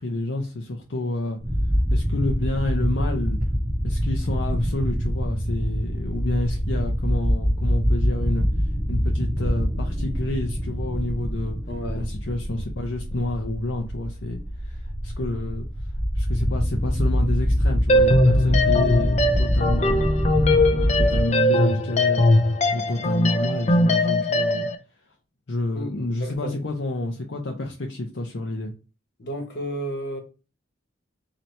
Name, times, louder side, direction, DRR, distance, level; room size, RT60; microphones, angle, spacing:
voice 1, 0.0-1.4 1.9-3.4 3.8-8.5 8.9-11.6 11.9-15.7 16.1-24.7 25.5-28.7, left 2 dB, 80° left, 0.7 m, -29 dB
sound 1, 1.4-21.3, equal, 20° right, 0.7 m, -25 dB
voice 2, 11.7-12.1 25.7-25.9 26.2-26.6 29.2-30.2, equal, 60° left, 1.2 m, -32 dB
sound 2, 17.9-24.8, left 1 dB, 40° left, 0.5 m, -20 dB
4.2 x 2.9 x 3.2 m
head